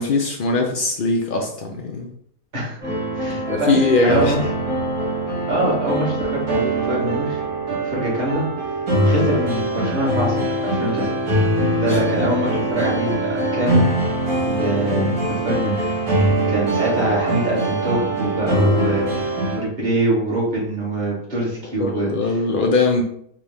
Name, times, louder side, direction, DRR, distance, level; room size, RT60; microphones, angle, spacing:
voice 1, 0.0-2.1 3.3-4.3 11.9-12.0 21.8-23.0, left 3 dB, 70° left, 1 dB, 0.5 m, -20 dB
sound 1, 2.8-19.6, right 1 dB, 75° right, 1.9 m, -22 dB
voice 2, 3.1-3.7 4.0-4.4 5.5-7.4 7.8-8.5 9.0-11.1 11.8-13.9 14.4-15.9 16.5-22.1, right 1 dB, 30° right, -6 dB, 1.5 m, -24 dB
4.5 x 2.2 x 3.4 m, 0.67 s
omnidirectional pair, 1.5 m